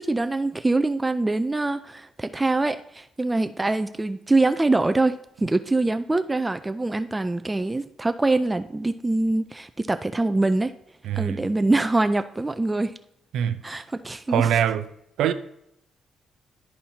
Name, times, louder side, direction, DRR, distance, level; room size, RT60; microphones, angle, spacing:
voice 1, 0.0-10.7 11.2-13.0 13.6-14.5, right 2 dB, 15° right, 0.4 m, -24 dB
voice 2, 11.0-11.5 13.3-13.6 14.3-14.8 15.2-15.3, right 9 dB, 80° right, 0.5 m, -23 dB
12.0 x 4.2 x 2.8 m
cardioid pair, 90°, 0 cm